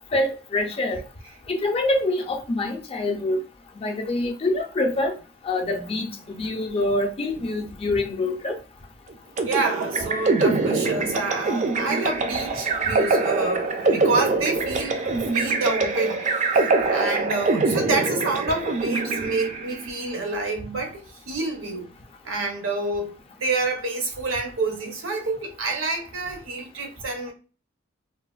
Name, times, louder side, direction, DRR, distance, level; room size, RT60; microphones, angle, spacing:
voice 1, 0.1-1.0 1.5-3.4 3.8-5.2 5.4-8.6, left 2 dB, 30° left, 0.4 m, -25 dB
sound 1, 9.4-19.8, right 3 dB, 40° right, 0.4 m, -24 dB
voice 2, 9.4-21.9 22.2-23.1 23.4-27.3, right 3 dB, 75° right, 0.7 m, -28 dB
3.2 x 2.1 x 2.3 m
head